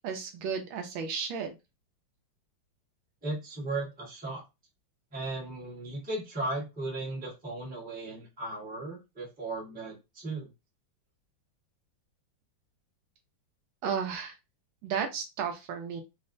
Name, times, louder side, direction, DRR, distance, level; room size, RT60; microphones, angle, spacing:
voice 1, 0.0-1.5 13.8-14.4 14.8-16.0, right 6 dB, 75° right, 4 dB, 1.4 m, -33 dB
voice 2, 3.2-4.4 5.1-10.5, right 2 dB, 5° right, -3 dB, 0.8 m, -36 dB
4.2 x 2.1 x 2.5 m, 0.24 s
omnidirectional pair, 2.3 m